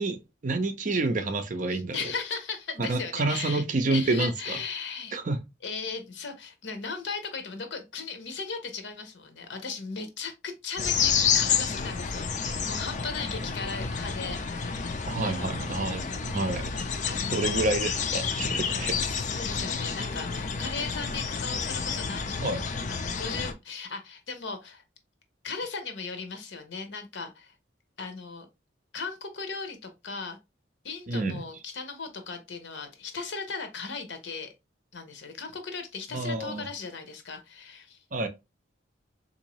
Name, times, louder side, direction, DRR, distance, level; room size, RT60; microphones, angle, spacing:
voice 1, 0.0-2.1 2.8-4.6 5.1-5.4 15.1-16.7 17.3-19.0 22.4-22.6 31.1-31.5 36.1-36.7 38.1-38.3, right 2 dB, 45° right, 0.5 m, -29 dB
voice 2, 1.7-3.6 3.9-5.2 5.6-15.7 17.1-17.7 18.9-24.8 25.4-27.5 28.0-28.5 28.9-30.4 30.8-34.5 34.9-38.0, left 4 dB, 75° left, 0.8 m, -37 dB
sound 1, 10.8-23.5, left 6 dB, 40° left, 0.5 m, -30 dB
3.8 x 2.7 x 2.9 m
head